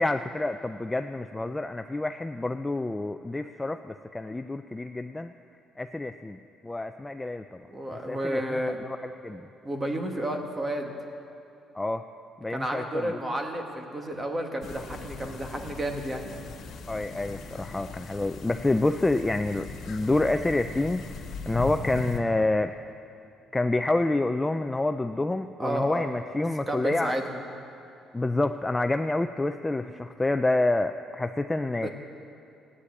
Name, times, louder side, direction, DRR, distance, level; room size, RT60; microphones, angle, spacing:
voice 1, 0.0-5.3 5.8-7.6 7.9-9.5 11.7-12.0 12.4-13.2 16.9-22.7 23.5-27.1 28.1-31.9, left 2 dB, 10° left, 7 dB, 0.3 m, -28 dB
voice 2, 7.7-8.8 9.6-10.9 12.5-16.3 25.6-27.4 29.8-30.0 31.8-31.9, right 1 dB, 15° right, 3 dB, 1.5 m, -31 dB
sound 1, 14.6-22.2, left 3 dB, 55° left, 1.7 m, -39 dB
16.5 x 9.9 x 8.4 m, 2.8 s
cardioid pair, 155°, 0 cm